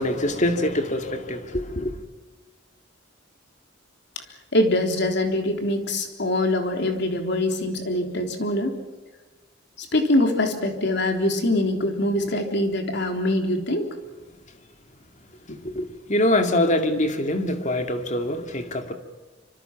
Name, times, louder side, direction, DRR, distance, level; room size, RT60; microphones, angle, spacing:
voice 1, 0.0-2.0 15.6-18.9, left 1 dB, 40° left, 2.4 m, -24 dB
voice 2, 4.5-8.7 9.8-13.9, left 1 dB, 60° left, 3.6 m, -23 dB
27.0 x 26.0 x 6.0 m
head